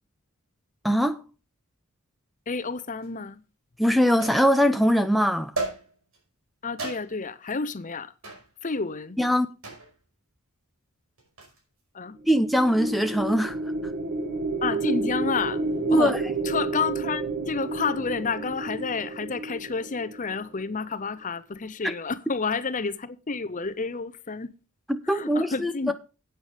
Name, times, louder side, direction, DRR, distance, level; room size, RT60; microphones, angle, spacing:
voice 1, 0.8-1.2 3.8-5.5 9.2-9.5 12.3-13.6 15.9-16.2 21.8-21.9 24.9-25.9, equal, ahead, 0.5 m, -22 dB
voice 2, 2.5-3.4 6.6-8.1 8.6-9.2 11.9-12.2 14.6-15.6 15.9-16.1 16.4-24.5 25.1-25.9, left 4 dB, 35° left, 0.7 m, -30 dB
sound 1, 3.0-3.1 4.2-4.8 5.6-6.2 6.8-7.3 8.2-8.5 9.6-10.0 11.2-11.6, right 3 dB, 60° right, 5.4 m, -34 dB
sound 2, 12.2-20.6, right 2 dB, 45° right, 1.4 m, -31 dB
9.7 x 9.0 x 5.0 m
head